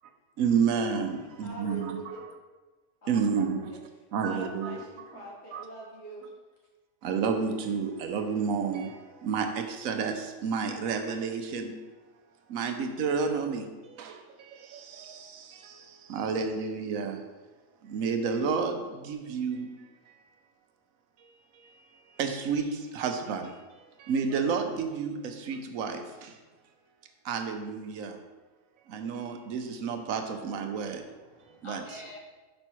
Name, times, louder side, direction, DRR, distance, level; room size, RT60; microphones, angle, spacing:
voice 1, 0.4-2.0 3.1-3.7 4.1-5.1 5.5-5.6 7.0-11.8 12.5-17.2 17.8-19.8 22.2-23.6 24.0-26.3 27.2-28.2 28.9-31.0 31.6-32.0, right 5 dB, 90° right, 6 dB, 1.1 m, -31 dB
voice 2, 1.4-2.2 3.0-3.8 4.2-6.3, right 1 dB, 55° left, -4 dB, 1.8 m, -44 dB
voice 3, 30.7-32.2, left 1 dB, 25° left, -1 dB, 0.9 m, -47 dB
5.4 x 5.3 x 4.5 m, 1.2 s
omnidirectional pair, 1.4 m